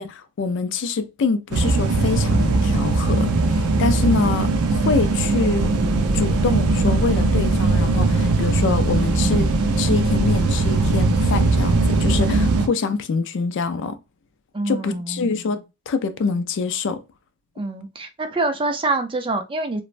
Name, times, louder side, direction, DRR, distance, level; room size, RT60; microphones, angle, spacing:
voice 1, 0.0-5.7 6.1-14.0 14.7-17.0, left 4 dB, 55° left, 0.4 m, -25 dB
sound 1, 1.5-12.7, right 3 dB, 80° right, 0.5 m, -19 dB
voice 2, 14.5-15.3 17.6-19.8, right 2 dB, 25° right, 0.4 m, -25 dB
3.1 x 2.0 x 2.4 m
head